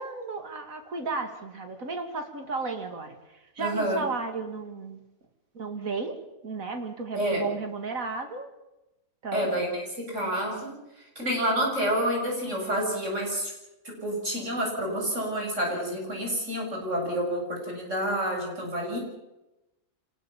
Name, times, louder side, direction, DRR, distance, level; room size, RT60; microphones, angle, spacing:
voice 1, 0.0-3.1 3.6-5.0 5.5-6.1 6.4-8.5 9.2-9.5, right 4 dB, 80° right, 5 dB, 2.8 m, -34 dB
voice 2, 3.6-4.0 7.1-7.4 9.3-10.8 11.2-13.5 13.8-19.0, equal, 60° right, 0 dB, 8.1 m, -28 dB
26.0 x 20.0 x 7.3 m, 0.96 s
omnidirectional pair, 1.4 m